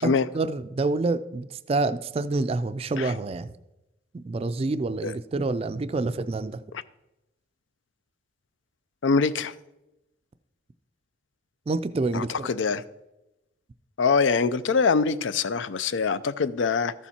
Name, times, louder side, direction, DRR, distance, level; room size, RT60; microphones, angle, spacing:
voice 1, 0.0-3.5 4.1-6.6 11.7-12.5, right 3 dB, 30° right, 12 dB, 0.3 m, -27 dB
voice 2, 9.0-9.5 12.1-12.8 14.0-16.9, left 5 dB, 85° left, 15 dB, 0.5 m, -24 dB
13.0 x 7.2 x 4.3 m, 0.95 s
head